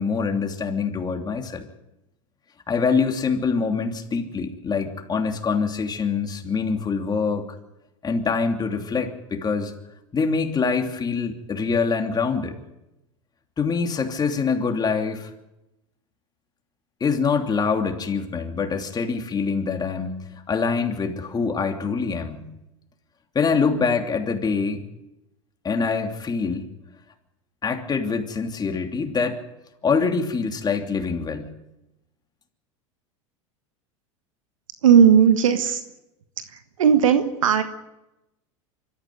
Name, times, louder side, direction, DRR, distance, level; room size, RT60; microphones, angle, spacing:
voice 1, 0.0-1.6 2.7-7.4 8.0-9.7 10.1-12.5 13.6-15.3 17.0-20.2 20.5-22.5 23.3-24.8 25.6-26.7 27.6-29.4 29.8-31.5, left 5 dB, 25° left, 4 dB, 3.0 m, -24 dB
voice 2, 34.8-35.8 36.5-37.6, right 8 dB, 80° right, 8 dB, 1.5 m, -16 dB
25.0 x 14.0 x 9.4 m, 0.94 s
hypercardioid pair, 90°, 17 cm